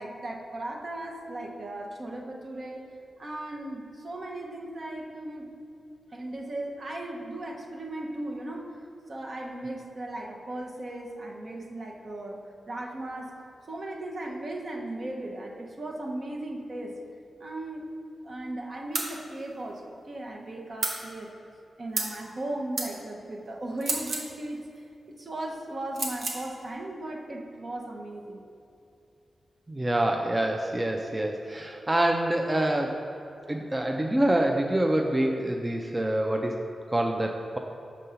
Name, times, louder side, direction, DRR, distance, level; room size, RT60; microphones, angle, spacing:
voice 1, 0.0-2.8 3.2-5.5 6.1-8.8 9.1-12.4 12.7-13.4 13.7-17.0 17.4-17.9 18.2-21.3 21.8-24.6 25.2-28.4, right 1 dB, 55° right, 0 dB, 0.8 m, -37 dB
sound 1, 18.9-19.1 20.8-21.0 21.9-22.2 22.8-22.9 23.8-24.3 25.9-26.4, right 3 dB, 80° right, 0.8 m, -30 dB
voice 2, 29.7-33.0 33.5-36.6 36.9-37.6, right 1 dB, 20° right, 2 dB, 0.4 m, -26 dB
5.3 x 3.7 x 5.6 m, 2.7 s
cardioid pair, 55°, 0 cm